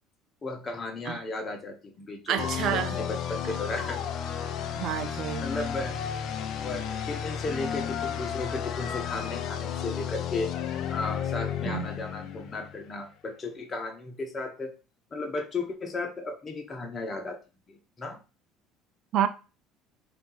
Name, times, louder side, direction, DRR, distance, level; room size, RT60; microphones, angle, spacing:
voice 1, 0.4-4.1 5.4-6.0 6.6-10.5 10.9-14.7 15.1-17.4 17.7-18.2, left 3 dB, 30° left, 1.1 m, -35 dB
voice 2, 2.3-3.0 4.8-5.5 11.6-11.9 19.1-19.3, right 10 dB, 60° right, 0.6 m, -28 dB
sound 1, 2.4-13.0, left 8 dB, 55° left, 0.5 m, -33 dB
3.8 x 2.8 x 3.9 m
supercardioid pair, 90°, 0 cm